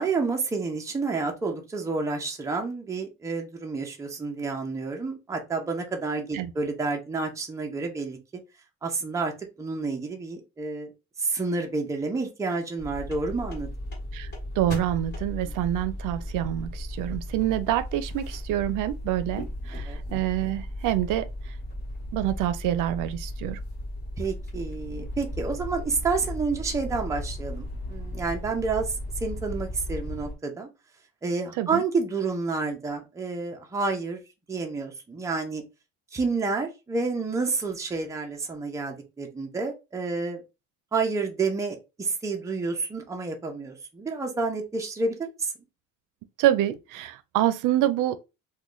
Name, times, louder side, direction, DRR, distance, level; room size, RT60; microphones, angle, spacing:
voice 1, 0.0-8.2 8.8-9.3 9.6-10.9 11.2-13.7 19.7-20.0 24.2-28.9 29.2-30.7 31.2-34.2 34.5-35.6 36.1-40.4 40.9-45.5, right 4 dB, 10° right, 0.5 m, -29 dB
sound 1, 12.8-30.3, left 1 dB, 35° left, 1.2 m, -36 dB
voice 2, 14.6-21.3 22.1-23.6 31.6-31.8 46.4-48.2, right 13 dB, 85° right, 0.5 m, -26 dB
3.1 x 2.2 x 3.7 m
cardioid pair, 175°, 30 cm